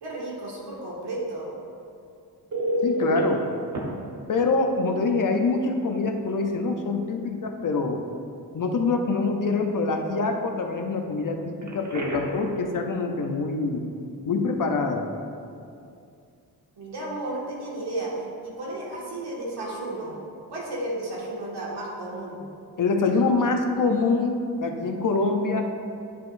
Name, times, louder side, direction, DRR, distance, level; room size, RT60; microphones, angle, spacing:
voice 1, 0.0-1.5 16.8-20.2 20.5-22.4, right 2 dB, 90° right, -5 dB, 1.9 m, -33 dB
Telephone, 2.5-3.2 3.7-3.8 5.6-5.7 6.1-6.3 11.6-12.5 19.6-19.8, equal, 50° right, 1.1 m, -28 dB
voice 2, 2.8-3.4 4.3-8.0 8.5-13.8 14.3-15.1 22.8-25.7, left 3 dB, 55° left, 4 dB, 0.7 m, -25 dB
10.0 x 6.4 x 2.6 m, 2.5 s
wide cardioid pair, 155°, 38 cm